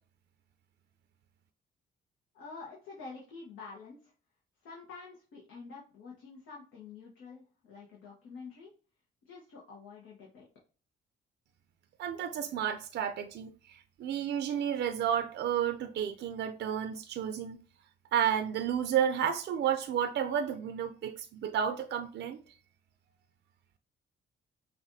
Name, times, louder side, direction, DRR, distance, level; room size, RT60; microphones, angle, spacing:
voice 1, 2.3-4.1 4.6-8.7 9.2-10.5, left 4 dB, 90° left, 1.2 m, -48 dB
voice 2, 12.0-17.6 18.1-22.4, right 9 dB, 60° right, 0.5 m, -31 dB
5.8 x 2.6 x 2.7 m
cardioid pair, 90°, 20 cm